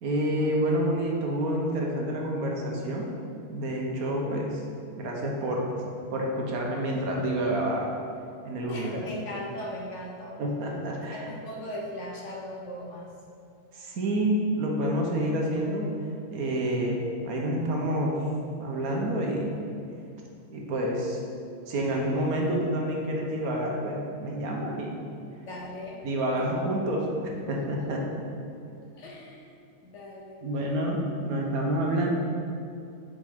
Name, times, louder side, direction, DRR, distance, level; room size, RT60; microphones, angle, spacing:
voice 1, 0.0-3.1 3.5-4.6 4.9-5.7 6.1-7.9 8.4-9.0 10.4-11.3 13.7-15.9 16.3-18.3 18.6-19.6 20.5-21.2 21.7-25.0 26.0-27.1 27.5-28.2 30.4-32.1, right 1 dB, 70° right, -1 dB, 1.3 m, -28 dB
voice 2, 8.7-10.4 10.9-13.1 25.4-26.1 26.3-27.0 27.5-27.9 28.9-29.5 29.8-30.5, left 1 dB, 55° left, -2 dB, 1.0 m, -39 dB
7.5 x 5.0 x 3.6 m, 2.5 s
omnidirectional pair, 1.7 m